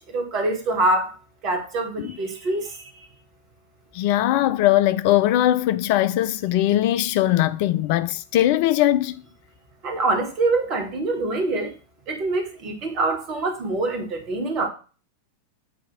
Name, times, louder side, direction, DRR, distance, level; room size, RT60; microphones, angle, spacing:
voice 1, 0.1-1.1 1.4-3.1 9.8-11.7 12.1-14.7, right 2 dB, 40° right, 1.8 m, -25 dB
voice 2, 3.9-9.2, left 13 dB, 45° left, 0.4 m, -20 dB
8.3 x 2.8 x 6.0 m
figure-of-eight pair, 90°, 0 cm